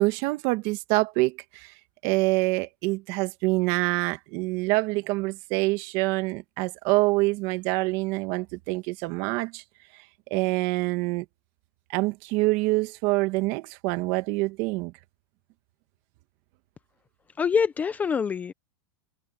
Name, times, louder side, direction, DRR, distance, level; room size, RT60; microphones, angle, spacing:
voice 1, 0.0-1.7 2.0-9.6 10.3-11.2 11.9-14.9, right 22 dB, 40° right, 1.8 m, -26 dB
voice 2, 17.4-18.5, left 6 dB, 15° left, 0.6 m, -25 dB
supercardioid pair, 160°, 12 cm